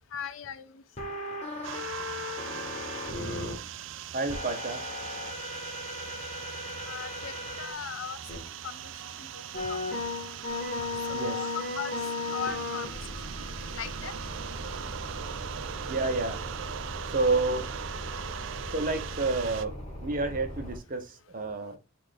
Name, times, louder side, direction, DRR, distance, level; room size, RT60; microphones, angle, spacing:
voice 1, 0.1-0.8 6.8-8.2 8.6-8.9 9.2-9.4 9.7-9.8 11.1-11.5 11.8-11.9 12.3-12.9 13.7-14.1, left 8 dB, 80° left, 0.5 m, -38 dB
sound 1, 1.0-3.5 4.3-7.7 8.3-8.4 9.5-20.8, left 2 dB, 35° left, 1.3 m, -37 dB
sound 2, 1.6-19.6, right 9 dB, 65° right, 0.3 m, -40 dB
voice 2, 4.1-4.8 10.7-10.8 11.1-11.5 15.9-16.4 17.1-17.7 18.7-21.8, right 3 dB, 40° right, 0.8 m, -30 dB
5.5 x 2.5 x 3.7 m
head